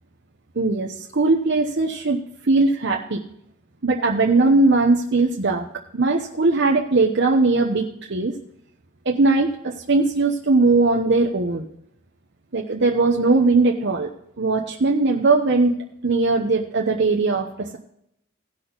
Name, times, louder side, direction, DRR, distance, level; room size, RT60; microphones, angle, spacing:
voice 1, 0.6-3.2 3.8-5.6 5.9-8.3 9.0-11.7 12.5-14.1 14.4-15.7 16.0-17.8, right 3 dB, 60° right, 0 dB, 0.9 m, -19 dB
17.0 x 6.1 x 3.9 m, 0.74 s
head